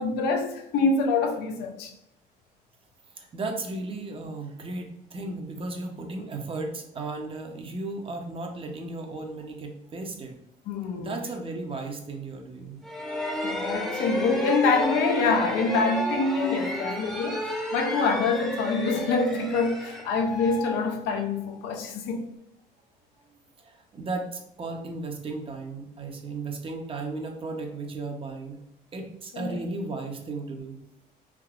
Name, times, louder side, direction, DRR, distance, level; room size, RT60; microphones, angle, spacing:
voice 1, 0.0-1.9 10.7-11.1 13.4-17.5 17.7-22.3 29.3-29.6, left 4 dB, 80° left, 0.5 m, -26 dB
voice 2, 3.2-10.4 11.0-12.8 23.6-28.6 28.9-30.8, right 3 dB, 35° right, 0.6 m, -35 dB
sound 1, 12.8-21.5, equal, ahead, 0.7 m, -32 dB
3.4 x 2.8 x 2.3 m
cardioid pair, 110°, 17 cm